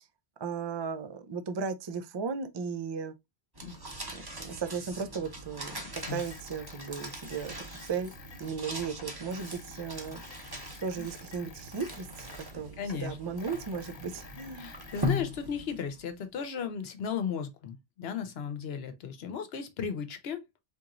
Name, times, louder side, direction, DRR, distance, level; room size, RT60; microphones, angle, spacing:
voice 1, 0.4-3.1 4.1-10.2 10.8-14.7, right 5 dB, 45° right, 0.3 m, -36 dB
sound 1, 3.5-16.1, left 1 dB, 25° right, 0.8 m, -40 dB
sound 2, 5.9-12.6 12.8-15.2, left 6 dB, 55° left, 0.4 m, -51 dB
voice 2, 12.8-13.2 14.6-20.6, left 7 dB, 75° left, 1.0 m, -35 dB
4.3 x 2.9 x 2.5 m
omnidirectional pair, 1.1 m